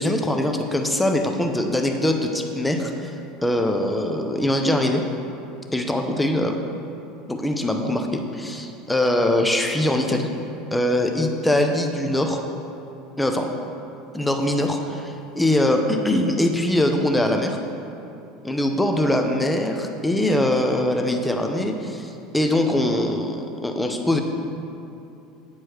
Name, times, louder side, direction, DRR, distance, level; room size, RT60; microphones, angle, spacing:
voice 1, 0.0-3.1 3.4-5.0 5.7-6.6 7.3-10.3 10.7-12.4 13.2-13.5 14.1-17.6 18.4-24.2, left 1 dB, 10° left, 4 dB, 0.7 m, -22 dB
8.9 x 4.7 x 4.4 m, 2.8 s
figure-of-eight pair, 75°, 0 cm